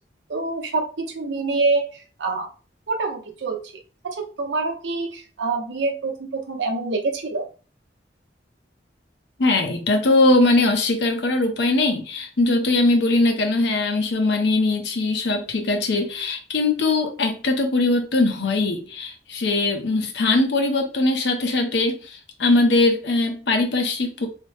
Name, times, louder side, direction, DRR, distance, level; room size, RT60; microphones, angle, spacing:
voice 1, 0.3-2.5 2.9-3.7 4.0-7.5, right 3 dB, 85° right, 3 dB, 0.7 m, -26 dB
voice 2, 9.4-24.3, left 2 dB, 70° left, 5 dB, 0.6 m, -21 dB
3.2 x 2.0 x 3.2 m, 0.36 s
head